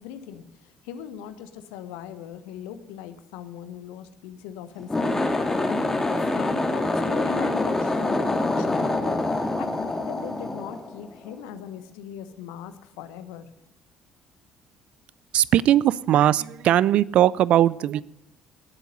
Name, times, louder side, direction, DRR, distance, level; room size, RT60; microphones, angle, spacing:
voice 1, 0.0-13.5, left 9 dB, 70° left, 10 dB, 1.2 m, -39 dB
sound 1, 4.8-11.3, left 2 dB, 20° left, 2.7 m, -25 dB
voice 2, 15.3-18.0, right 12 dB, 55° right, 22 dB, 0.4 m, -19 dB
18.5 x 8.2 x 5.3 m, 0.83 s
figure-of-eight pair, 50°, 2 cm